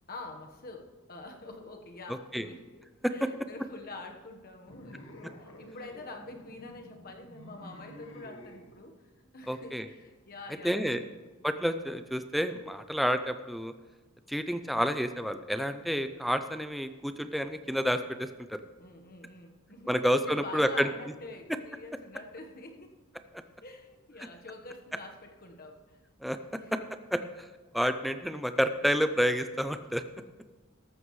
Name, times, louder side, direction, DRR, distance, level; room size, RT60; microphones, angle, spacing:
voice 1, 0.1-2.8 3.1-8.9 9.3-11.2 18.8-22.9 23.6-26.0 26.5-26.9, left 2 dB, 45° left, 4 dB, 1.3 m, -46 dB
sound 1, 4.7-8.6, equal, 60° left, 1.8 m, -50 dB
voice 2, 9.5-9.9 10.6-11.0 11.4-13.7 14.3-18.6 19.9-20.9 26.2-26.4 27.1-27.5 27.7-30.0, equal, ahead, 9 dB, 0.4 m, -29 dB
14.0 x 12.5 x 3.2 m, 1.3 s
head